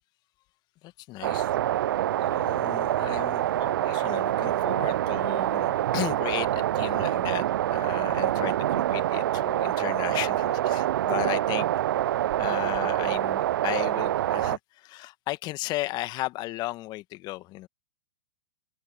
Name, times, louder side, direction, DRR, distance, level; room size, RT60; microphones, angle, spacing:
voice 1, 0.8-1.5 2.2-7.5 7.7-11.7 12.4-17.7, left 18 dB, 35° left, 1.9 m, -35 dB
sound 1, 1.2-14.6, right 12 dB, 60° right, 0.7 m, -26 dB
open air
hypercardioid pair, 110°, 12 cm